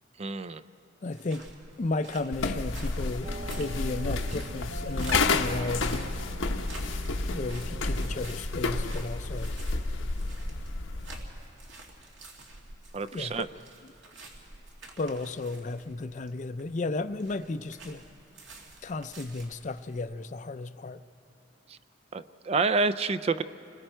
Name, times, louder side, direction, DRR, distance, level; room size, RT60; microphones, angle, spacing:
voice 1, 0.2-0.6 12.9-13.5 22.1-23.4, right 4 dB, 30° right, 11 dB, 0.4 m, -28 dB
voice 2, 1.0-1.5 1.8-6.0 7.3-9.5 13.1-13.5 15.0-18.0 18.8-21.0, left 3 dB, 40° left, 12 dB, 0.5 m, -34 dB
sound 1, 1.1-20.0, right 2 dB, 70° right, 2.4 m, -48 dB
sound 2, 2.3-11.2, left 3 dB, 80° left, 0.9 m, -30 dB
sound 3, 3.2-8.4, right 1 dB, 55° right, 0.8 m, -44 dB
29.5 x 21.0 x 4.5 m, 2.9 s
head